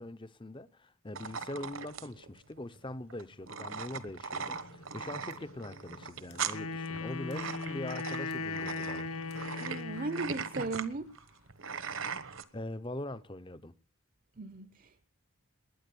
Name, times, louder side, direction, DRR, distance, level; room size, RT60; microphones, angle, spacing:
voice 1, 0.0-9.1 12.5-13.7, left 1 dB, 20° left, 0.7 m, -42 dB
sound 1, 1.1-12.4, right 6 dB, 60° right, 1.2 m, -40 dB
sound 2, 4.5-9.8, left 1 dB, 50° left, 1.3 m, -52 dB
Wind instrument woodwind instrument, 6.5-10.5, left 4 dB, 80° left, 1.7 m, -38 dB
voice 2, 9.6-11.1 14.4-15.1, right 3 dB, 40° right, 0.8 m, -37 dB
20.5 x 9.8 x 6.9 m
head